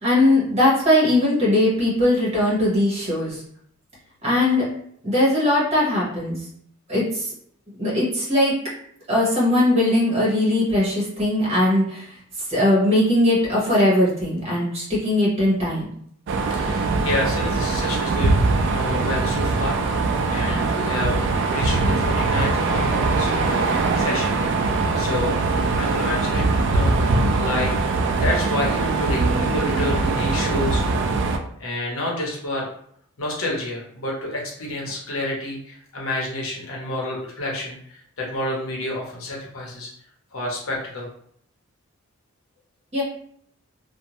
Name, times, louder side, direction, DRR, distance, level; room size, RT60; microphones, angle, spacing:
voice 1, 0.0-3.4 4.2-4.7 5.0-6.4 6.9-7.3 7.8-8.5 9.1-15.9 42.9-43.0, left 1 dB, 30° right, -6 dB, 1.0 m, -20 dB
sound 1, 16.3-31.4, right 3 dB, 55° right, 0.3 m, -22 dB
voice 2, 16.5-24.4 24.9-25.4 25.8-26.9 27.4-27.7 28.2-30.8 31.6-32.7 33.2-37.8 38.2-39.9 40.3-41.1, left 1 dB, 75° left, -2 dB, 0.8 m, -29 dB
2.6 x 2.1 x 2.9 m, 0.66 s
head